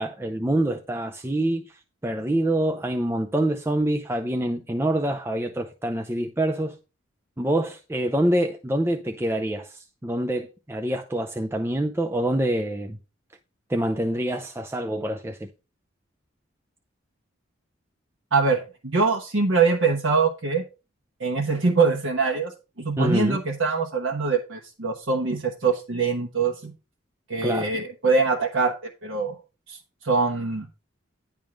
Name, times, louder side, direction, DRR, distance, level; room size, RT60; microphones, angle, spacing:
voice 1, 0.0-6.8 7.4-13.0 13.7-15.5 23.0-23.4 27.4-27.7, right 1 dB, 10° right, 0.5 m, -26 dB
voice 2, 18.3-20.6 21.2-22.5 22.8-26.7 27.3-29.4 29.7-29.8 30.0-30.7, right 4 dB, 70° right, 1.2 m, -23 dB
10.5 x 3.6 x 6.2 m
head